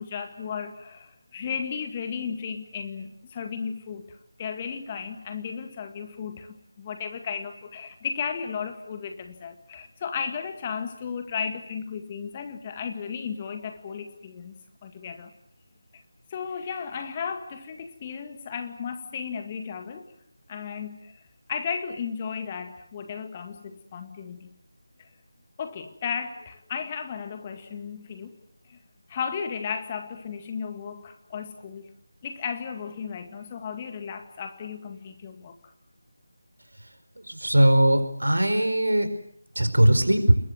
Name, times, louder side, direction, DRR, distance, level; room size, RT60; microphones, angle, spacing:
voice 1, 0.0-15.3 16.3-20.0 20.5-21.1 21.5-24.5 25.6-28.3 28.7-28.8 29.1-31.9 32.2-35.5, left 6 dB, 20° left, 7 dB, 1.9 m, -34 dB
voice 2, 37.2-39.1 39.5-40.4, right 1 dB, 70° right, 9 dB, 4.7 m, -20 dB
26.5 x 22.5 x 7.9 m, 0.69 s
figure-of-eight pair, 160°, 0 cm